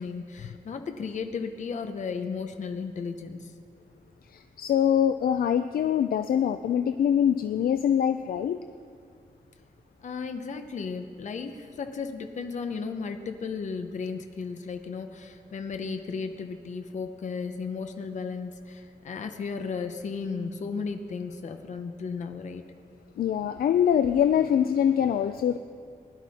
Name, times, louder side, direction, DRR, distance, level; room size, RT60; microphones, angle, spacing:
voice 1, 0.0-3.5 10.0-22.6, left 5 dB, 55° left, 6 dB, 0.8 m, -34 dB
voice 2, 4.3-8.6 23.2-25.6, left 9 dB, 85° left, 10 dB, 0.4 m, -24 dB
20.0 x 11.5 x 4.2 m, 2.2 s
wide cardioid pair, 180°, 15 cm